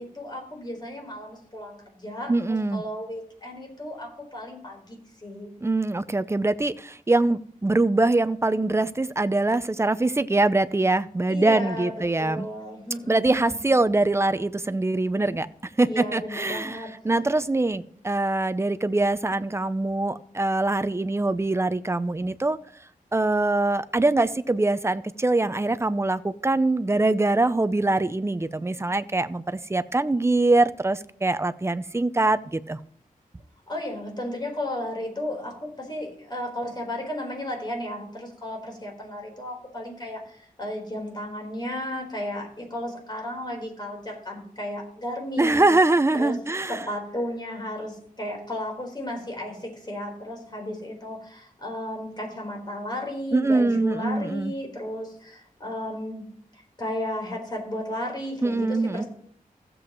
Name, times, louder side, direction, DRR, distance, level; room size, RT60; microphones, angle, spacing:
voice 1, 0.0-5.5 11.3-13.6 15.8-16.9 33.7-45.8 46.1-46.4 46.7-56.2 56.5-59.1, left 1 dB, 30° left, 1 dB, 4.2 m, -34 dB
voice 2, 2.3-2.8 5.6-12.5 13.1-15.5 15.8-16.8 17.0-22.6 23.1-32.8 45.4-46.8 53.3-54.5 58.4-59.0, right 2 dB, 20° right, 12 dB, 0.5 m, -23 dB
15.5 x 7.8 x 3.1 m, 0.62 s
wide cardioid pair, 120°, 15 cm